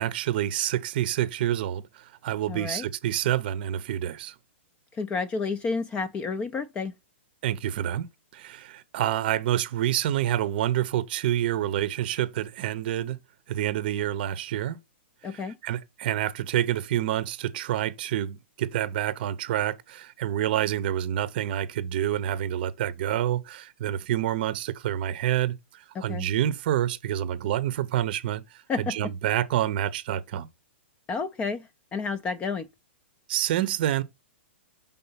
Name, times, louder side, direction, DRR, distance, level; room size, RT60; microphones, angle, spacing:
voice 1, 0.0-4.3 7.4-8.1 8.3-13.2 13.5-14.8 15.3-30.5 33.3-34.0, right 12 dB, 50° right, 0.6 m, -28 dB
voice 2, 2.5-2.9 4.9-6.9 15.2-15.6 25.9-26.3 28.7-29.1 31.1-32.7, left 4 dB, 15° left, 0.4 m, -30 dB
5.7 x 3.7 x 5.5 m
hypercardioid pair, 150°, 7 cm